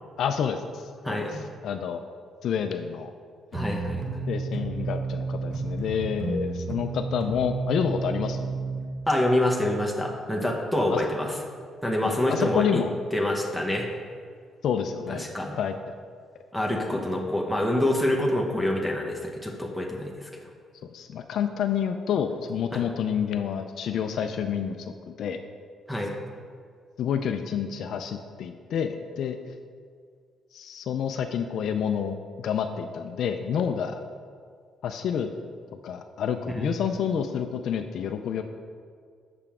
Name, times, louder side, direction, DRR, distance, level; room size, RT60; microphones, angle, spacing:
voice 1, 0.2-2.0 2.4-3.1 4.3-8.5 10.9-11.0 12.3-12.9 14.6-15.3 15.6-15.9 20.9-25.4 27.0-29.4 30.5-34.0 34.8-35.3 35.8-38.4, left 7 dB, 70° left, 6 dB, 0.3 m, -29 dB
voice 2, 1.0-1.4 3.5-4.0 9.1-11.3 11.8-12.8 13.1-13.9 15.2-15.6 16.5-20.4 22.7-22.8 25.9-26.1 36.6-36.7, left 1 dB, 5° right, 0 dB, 0.9 m, -26 dB
sound 1, 3.5-8.8, right 3 dB, 40° right, 1.0 m, -31 dB
6.8 x 5.7 x 3.6 m, 2.1 s
cardioid pair, 90°, 0 cm